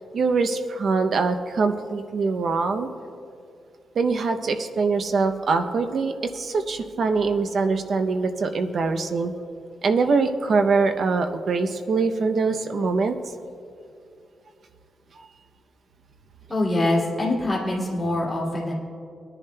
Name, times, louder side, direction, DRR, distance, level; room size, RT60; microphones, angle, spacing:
voice 1, 0.1-2.9 4.0-9.3 9.8-13.2, right 4 dB, 50° right, 7 dB, 0.6 m, -23 dB
voice 2, 16.5-18.7, left 1 dB, 10° left, -6 dB, 2.4 m, -24 dB
20.5 x 10.5 x 2.2 m, 2.5 s
wide cardioid pair, 170°, 0 cm